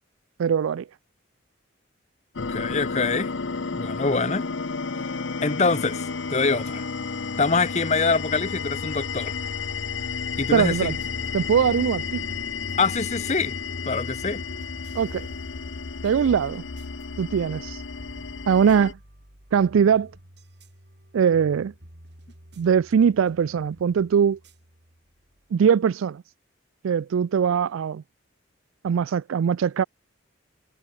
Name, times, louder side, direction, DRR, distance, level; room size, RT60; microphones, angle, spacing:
voice 1, 0.4-0.9 10.5-11.0 11.3-12.2 14.9-15.3 16.0-16.6 17.2-17.8 18.5-19.0 19.5-20.1 21.1-21.7 22.6-24.4 25.5-26.2 26.8-28.0 28.8-29.8, right 7 dB, 85° right, 0.4 m, -21 dB
sound 1, 2.4-18.9, left 5 dB, 70° left, 0.9 m, -32 dB
voice 2, 2.4-3.3 3.7-4.5 5.4-6.0 6.3-6.8 7.4-9.4 10.4-11.0 12.8-13.6 13.8-14.4, left 4 dB, 35° left, 0.8 m, -24 dB
sound 2, 10.3-25.5, right 1 dB, 55° right, 5.5 m, -50 dB
head